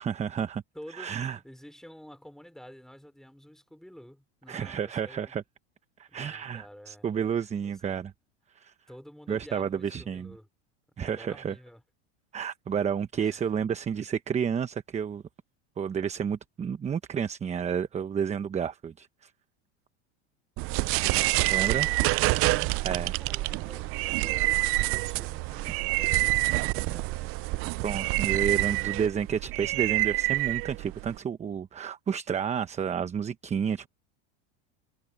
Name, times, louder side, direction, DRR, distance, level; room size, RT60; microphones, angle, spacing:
voice 1, 0.0-0.6 0.9-1.4 4.5-5.4 6.0-8.1 8.5-8.7 9.3-10.3 11.0-11.6 12.3-15.2 15.8-19.3 21.5-21.9 22.8-23.2 27.8-33.9, right 7 dB, 20° right, 1.0 m, -31 dB
voice 2, 0.7-5.3 6.1-7.1 7.6-7.8 8.9-10.5 11.0-11.8 13.2-13.6 21.3-22.5 23.2-28.1, equal, ahead, 5.3 m, -50 dB
sound 1, 20.6-31.2, right 22 dB, 45° right, 0.6 m, -27 dB
supercardioid pair, 120°, 32 cm